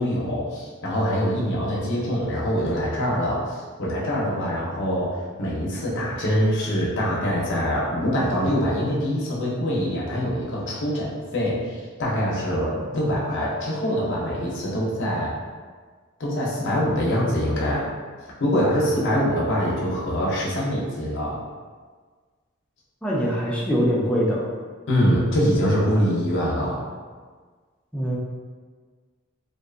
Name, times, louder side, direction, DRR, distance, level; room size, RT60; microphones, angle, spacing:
voice 1, 0.0-15.3 16.2-17.9 18.4-21.4 24.9-26.8, equal, 60° left, -5 dB, 0.6 m, -24 dB
voice 2, 23.0-24.5 27.9-28.2, equal, 5° left, -5 dB, 0.4 m, -23 dB
2.5 x 2.3 x 2.4 m, 1.5 s
head